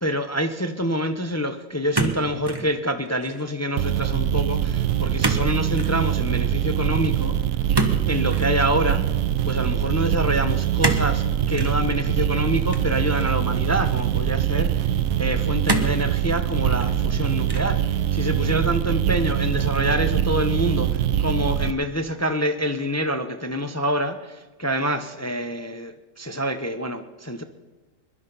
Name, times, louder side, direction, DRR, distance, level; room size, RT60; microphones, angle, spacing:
voice 1, 0.0-7.4 8.1-9.1 9.4-27.4, equal, 20° left, 8 dB, 0.5 m, -26 dB
sound 1, 1.9-2.7 3.1-3.5 5.2-5.5 5.7-6.0 7.7-8.5 10.8-11.1 11.6-11.8 12.7-13.5 14.2-14.3 15.7-16.0 16.6-17.1 17.5-17.8, right 2 dB, 20° right, 1.1 m, -26 dB
sound 2, 3.8-21.7, right 10 dB, 75° right, 1.0 m, -23 dB
22.0 x 11.0 x 5.4 m, 1.3 s
omnidirectional pair, 1.4 m